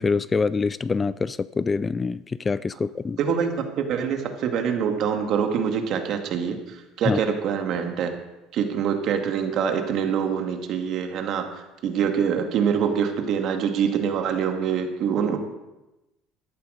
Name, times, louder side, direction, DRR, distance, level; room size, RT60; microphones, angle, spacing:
voice 1, 0.0-3.2 7.1-7.2, left 4 dB, 20° left, 18 dB, 0.3 m, -25 dB
voice 2, 3.2-8.1 8.5-11.4 11.8-15.4, right 7 dB, 55° right, 5 dB, 2.0 m, -25 dB
13.0 x 11.0 x 5.0 m, 0.99 s
supercardioid pair, 110°, 0 cm